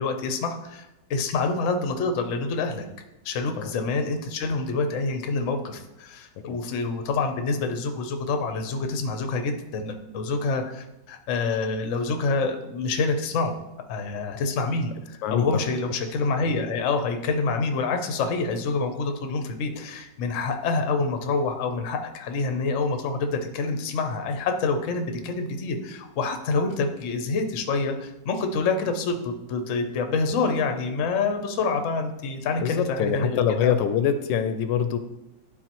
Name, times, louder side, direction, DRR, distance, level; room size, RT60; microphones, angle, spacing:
voice 1, 0.0-2.8 3.2-13.5 13.9-33.7, left 4 dB, 55° left, 6 dB, 0.9 m, -27 dB
voice 2, 15.2-15.6 32.6-35.0, left 8 dB, 80° left, 10 dB, 1.2 m, -24 dB
12.0 x 4.1 x 3.0 m, 0.94 s
omnidirectional pair, 2.0 m